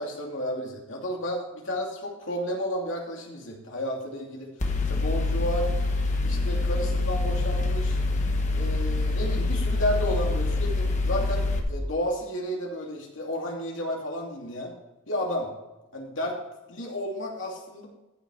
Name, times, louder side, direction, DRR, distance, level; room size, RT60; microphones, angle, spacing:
voice 1, 0.0-4.5 4.9-5.7 6.2-8.0 8.5-14.8 15.1-15.5 15.9-16.4 16.7-17.9, equal, 65° left, 0 dB, 2.6 m, -32 dB
Mechanical fan, 4.6-11.6, left 2 dB, 35° left, 1.4 m, -25 dB
14.0 x 6.0 x 4.9 m, 1.0 s
head